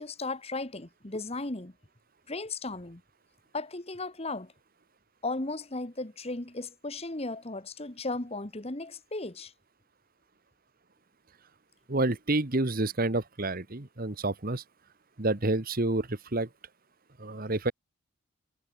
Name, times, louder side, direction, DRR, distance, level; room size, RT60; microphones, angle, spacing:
voice 1, 0.0-1.7 2.3-3.0 3.5-4.5 5.2-9.5, left 2 dB, 25° left, 1.4 m, -36 dB
voice 2, 11.9-14.6 15.2-16.5 17.2-17.7, right 2 dB, 40° right, 1.4 m, -29 dB
head